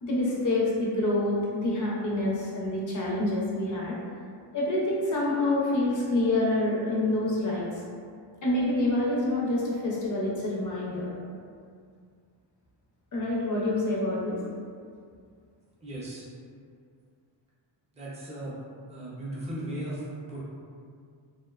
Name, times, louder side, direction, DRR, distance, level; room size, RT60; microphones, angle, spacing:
voice 1, 0.0-4.0 4.5-7.7 8.4-11.1 13.1-14.4, left 2 dB, 40° left, -5 dB, 0.5 m, -27 dB
voice 2, 15.8-16.2 17.9-18.6 18.9-20.4, right 1 dB, 15° right, -8 dB, 0.5 m, -37 dB
2.6 x 2.1 x 2.3 m, 2.2 s
cardioid pair, 140°, 47 cm